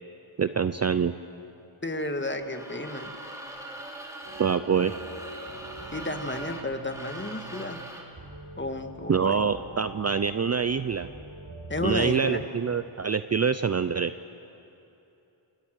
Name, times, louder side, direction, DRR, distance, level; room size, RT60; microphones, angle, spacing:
voice 1, 0.4-1.1 4.4-4.9 9.1-11.1 11.8-14.1, right 6 dB, 35° right, 12 dB, 0.5 m, -25 dB
voice 2, 1.8-3.1 5.9-7.8 8.6-9.4 11.7-12.4, left 2 dB, 25° left, 6 dB, 1.8 m, -32 dB
sound 1, 2.4-8.2, right 1 dB, 5° right, 3.0 m, -41 dB
sound 2, 4.2-12.0, right 3 dB, 50° right, 7.1 m, -44 dB
29.5 x 18.0 x 6.5 m, 2.9 s
cardioid pair, 70°, 49 cm